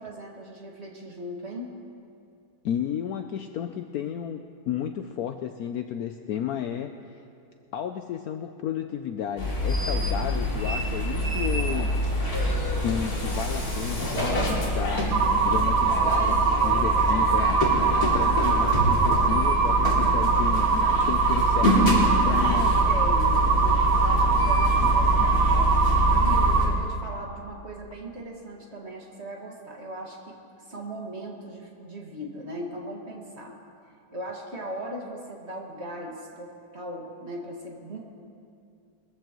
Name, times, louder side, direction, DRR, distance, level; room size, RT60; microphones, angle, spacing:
voice 1, 0.0-1.7 17.0-17.1 17.4-17.5 22.9-33.5 34.1-38.0, right 1 dB, 35° right, -2 dB, 2.1 m, -38 dB
voice 2, 2.6-6.9 7.7-11.9 12.8-15.1 15.4-17.6 18.1-22.8 24.8-25.3, left 9 dB, 85° left, 6 dB, 0.8 m, -33 dB
sound 1, 9.4-26.7, equal, 45° left, 3.2 m, -25 dB
sound 2, 15.1-26.7, right 5 dB, 75° right, 1.7 m, -23 dB
21.5 x 14.5 x 3.0 m, 2.5 s
omnidirectional pair, 2.2 m